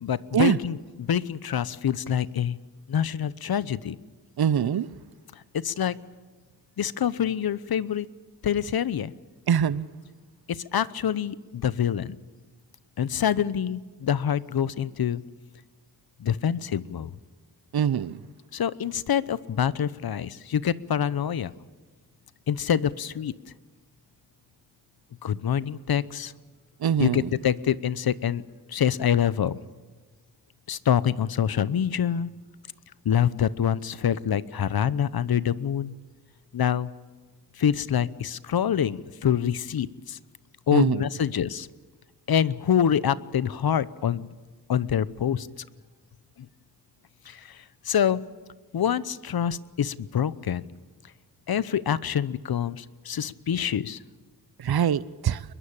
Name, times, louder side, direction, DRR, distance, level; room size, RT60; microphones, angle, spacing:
voice 1, 0.0-2.6 2.9-4.0 5.5-6.0 6.8-8.1 8.4-9.1 10.5-12.2 13.0-15.2 16.2-17.1 18.5-21.5 22.5-23.3 25.2-26.3 27.0-28.4 28.7-29.6 30.7-32.3 33.0-35.9 36.5-36.9 37.6-40.2 40.7-41.7 42.3-44.3 44.7-45.5 47.3-48.2 48.7-50.6 51.5-54.0, left 9 dB, 65° left, 0.9 m, -26 dB
voice 2, 4.4-4.9 9.5-9.9 17.7-18.2 26.8-27.3 40.7-41.0 54.6-55.4, right 9 dB, 70° right, 0.8 m, -23 dB
23.0 x 21.5 x 8.7 m
cardioid pair, 65°, 39 cm